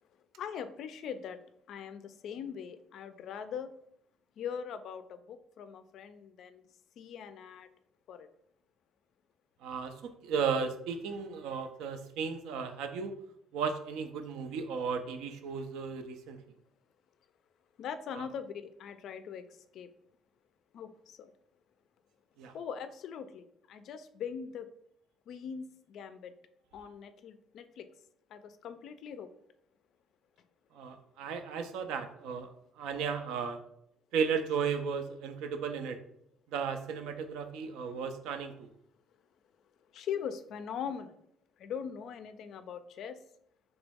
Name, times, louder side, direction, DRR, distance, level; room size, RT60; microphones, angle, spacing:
voice 1, 0.4-1.4 1.7-3.7 4.4-6.6 7.0-7.7 8.1-8.3 17.8-19.4 19.7-19.9 20.7-21.3 22.5-24.7 25.3-26.3 26.7-27.9 28.3-29.3 39.9-41.1 41.6-43.2, left 7 dB, 60° left, 10 dB, 0.3 m, -41 dB
voice 2, 9.6-13.1 13.5-16.4 18.1-18.2 22.4-22.5 30.7-32.5 32.8-33.6 34.1-36.0 36.5-38.7, right 6 dB, 80° right, 7 dB, 0.4 m, -35 dB
3.1 x 3.0 x 3.5 m, 0.73 s
cardioid pair, 125°, 0 cm